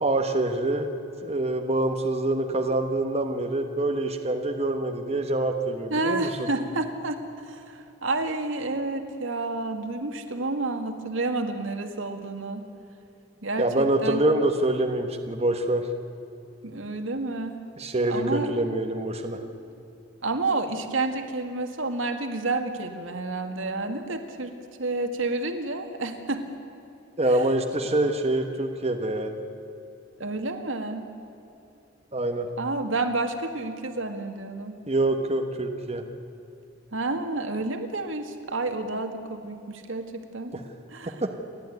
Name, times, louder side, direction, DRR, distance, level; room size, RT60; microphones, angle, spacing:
voice 1, 0.0-0.9 1.2-6.3 13.6-15.8 17.8-19.4 27.2-29.4 32.1-32.5 34.9-36.0 41.2-41.3, right 2 dB, 35° right, 4 dB, 1.3 m, -25 dB
voice 2, 5.9-12.6 13.4-14.2 16.6-17.6 18.1-18.5 20.2-24.5 24.8-26.4 27.3-27.5 30.2-31.1 32.6-34.8 36.9-40.6 40.9-41.2, right 2 dB, 80° right, 6 dB, 2.0 m, -30 dB
29.5 x 12.0 x 9.4 m, 2.9 s
head